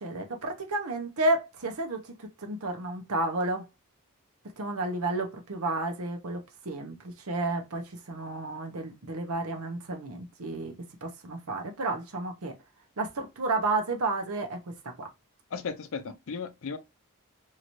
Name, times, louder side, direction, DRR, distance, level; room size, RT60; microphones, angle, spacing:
voice 1, 0.0-3.6 4.6-6.4 6.6-10.7 11.0-12.5 13.0-14.6 15.0-15.1, right 2 dB, 70° right, 0.9 m, -31 dB
voice 2, 15.5-16.8, left 5 dB, 60° left, 0.5 m, -35 dB
2.9 x 2.6 x 3.0 m
head